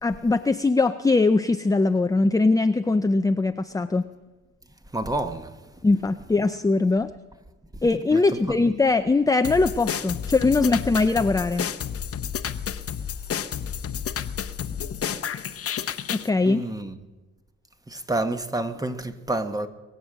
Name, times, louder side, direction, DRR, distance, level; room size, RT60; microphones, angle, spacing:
voice 1, 0.0-4.0 5.8-7.1 7.8-11.6 16.1-16.6, left 3 dB, 10° left, 0.5 m, -21 dB
voice 2, 4.9-5.5 8.1-8.2 8.5-8.7 16.5-17.0 17.9-19.7, right 2 dB, 10° right, 1.2 m, -29 dB
sound 1, 9.4-16.3, left 8 dB, 50° left, 0.9 m, -31 dB
22.5 x 8.1 x 7.5 m
cardioid pair, 90°, 30 cm